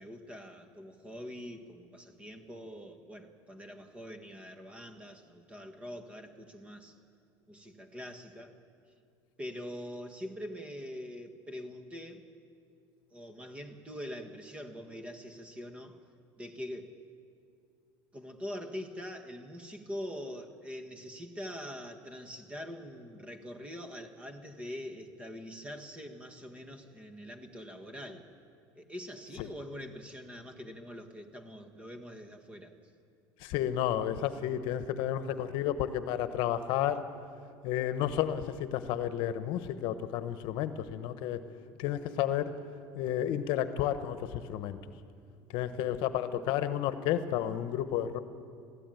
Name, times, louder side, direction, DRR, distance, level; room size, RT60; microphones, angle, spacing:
voice 1, 0.0-6.9 7.5-8.6 9.4-12.3 13.1-16.0 16.4-17.0 18.1-28.3 28.7-32.7, equal, 15° right, 6 dB, 1.6 m, -44 dB
voice 2, 33.4-37.0 37.6-41.4 41.8-42.5 43.0-44.8 45.5-48.2, left 11 dB, 60° left, 11 dB, 1.1 m, -31 dB
21.0 x 15.5 x 9.2 m, 2.4 s
cardioid pair, 135°, 9 cm